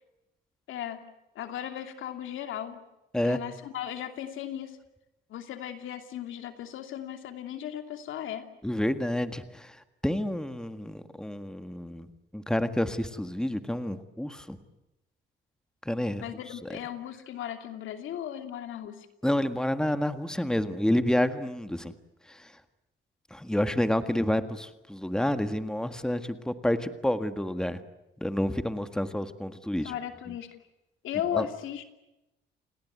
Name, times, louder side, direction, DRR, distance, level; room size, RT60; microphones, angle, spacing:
voice 1, 0.7-1.0 1.3-2.8 3.2-4.8 5.3-8.5 16.2-19.1 29.8-30.6 31.0-31.8, left 10 dB, 80° left, 7 dB, 2.7 m, -36 dB
voice 2, 8.6-12.1 12.3-14.6 15.9-16.2 16.6-16.8 19.2-21.9 22.3-22.5 23.3-27.8 28.2-29.9 31.3-31.5, left 1 dB, 5° left, 9 dB, 1.8 m, -29 dB
29.0 x 19.0 x 9.5 m, 0.94 s
cardioid pair, 90°, 20 cm